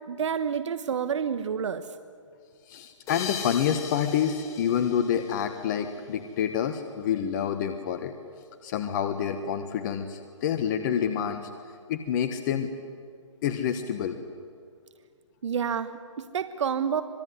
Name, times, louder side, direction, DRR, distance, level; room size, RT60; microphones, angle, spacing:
voice 1, 0.1-1.9 15.4-17.0, right 7 dB, 65° right, 11 dB, 1.3 m, -29 dB
voice 2, 2.7-8.1 8.6-11.5 11.9-12.7 13.4-14.2, left 8 dB, 40° left, 7 dB, 1.5 m, -28 dB
sound 1, 3.1-6.1, left 7 dB, 20° left, 2.4 m, -40 dB
26.0 x 20.5 x 9.6 m, 2.2 s
hypercardioid pair, 145°, 16 cm